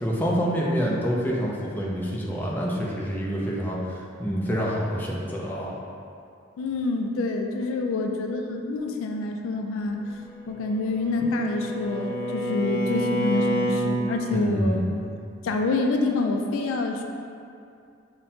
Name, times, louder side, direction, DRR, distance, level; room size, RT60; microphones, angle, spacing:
voice 1, 0.0-5.8 14.3-15.0, equal, 10° left, -4 dB, 0.4 m, -27 dB
voice 2, 6.6-10.0 10.5-14.8 15.4-17.0, left 3 dB, 75° left, 3 dB, 0.3 m, -27 dB
Bowed string instrument, 10.5-13.9, equal, 35° left, 0.8 m, -28 dB
5.6 x 2.1 x 2.7 m, 2.5 s
head